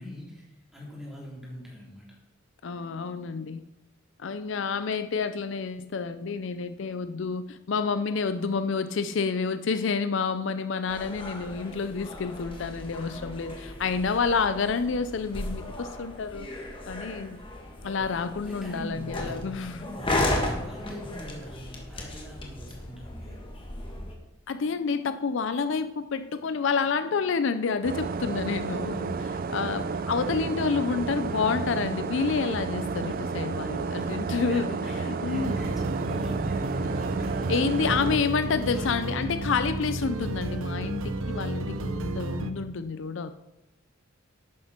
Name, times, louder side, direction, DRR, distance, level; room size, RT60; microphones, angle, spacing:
voice 1, 0.0-2.2 17.8-19.4 19.6-23.4 29.6-30.1 33.1-33.3 33.9-38.3 38.7-39.1, equal, ahead, -5 dB, 3.7 m, -43 dB
voice 2, 2.6-3.6 4.2-16.5 16.9-17.4 17.8-19.8 24.5-35.6 37.5-43.3, left 5 dB, 60° left, 11 dB, 0.4 m, -29 dB
sound 1, 10.9-24.1, left 1 dB, 25° left, 1.7 m, -35 dB
sound 2, 27.8-38.2, right 4 dB, 45° right, 0.4 m, -31 dB
sound 3, 35.3-42.5, right 2 dB, 80° right, 0.8 m, -32 dB
11.5 x 9.6 x 4.4 m, 0.98 s
head